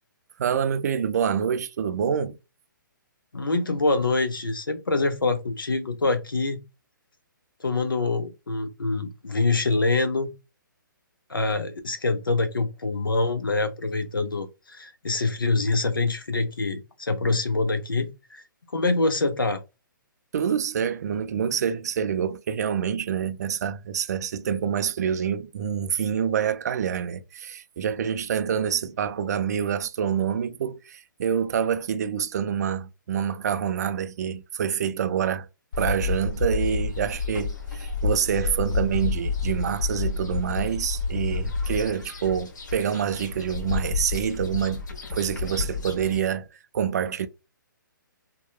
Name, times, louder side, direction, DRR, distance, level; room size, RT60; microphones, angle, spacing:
voice 1, 0.4-2.4 20.3-35.5 35.8-44.8 45.1-46.5 46.7-47.3, right 8 dB, 50° right, 0.4 m, -27 dB
voice 2, 3.3-6.6 7.6-10.3 11.3-18.4 18.7-19.6, left 3 dB, 85° left, 0.6 m, -25 dB
sound 1, 35.7-46.3, left 4 dB, 60° left, 1.2 m, -30 dB
2.8 x 2.2 x 2.3 m
figure-of-eight pair, 130°, 11 cm